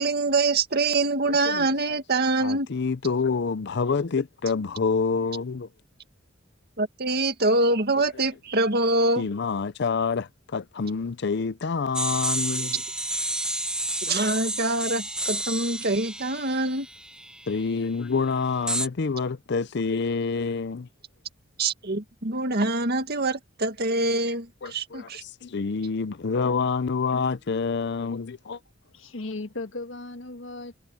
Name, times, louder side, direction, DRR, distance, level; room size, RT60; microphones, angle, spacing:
voice 1, 0.0-2.7 6.8-9.3 14.0-16.9 21.6-25.2, right 2 dB, 55° right, 2.1 m, -25 dB
voice 2, 1.2-1.7 2.4-5.7 9.2-12.8 17.5-20.9 24.1-24.2 24.6-28.6, left 5 dB, 60° left, 0.6 m, -27 dB
sound 1, 11.9-17.6 18.7-18.9, right 1 dB, 5° right, 0.7 m, -30 dB
voice 3, 28.9-30.8, left 2 dB, 80° left, 1.6 m, -36 dB
head